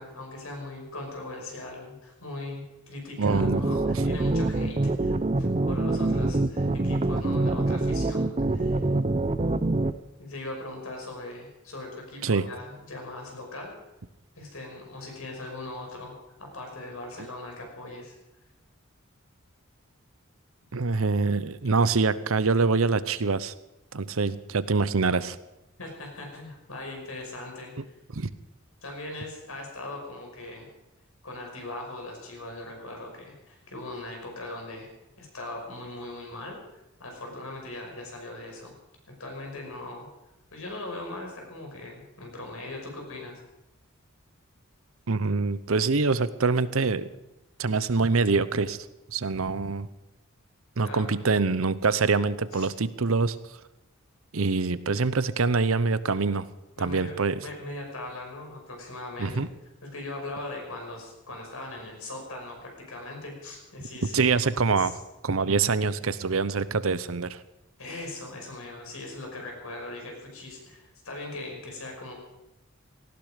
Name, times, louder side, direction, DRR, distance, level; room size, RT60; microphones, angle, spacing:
voice 1, 0.0-8.9 10.2-13.8 14.4-18.2 25.8-27.9 28.8-30.7 31.2-34.9 35.2-36.6 37.0-38.7 39.1-40.1 40.5-43.4 50.8-51.1 52.5-52.7 56.8-59.5 59.8-64.3 64.7-65.0 67.8-72.1, left 2 dB, 85° left, 1 dB, 5.5 m, -40 dB
sound 1, 3.2-9.9, right 2 dB, 30° right, 0.5 m, -25 dB
voice 2, 3.2-3.6 3.9-4.0 12.2-12.5 20.7-23.5 23.9-25.4 28.1-28.3 45.1-47.1 47.6-48.8 49.1-49.9 50.8-53.4 54.3-56.5 56.8-57.4 59.2-59.5 64.1-64.9 65.2-67.4, right 4 dB, 75° right, 15 dB, 0.8 m, -25 dB
18.5 x 15.5 x 5.1 m, 0.93 s
head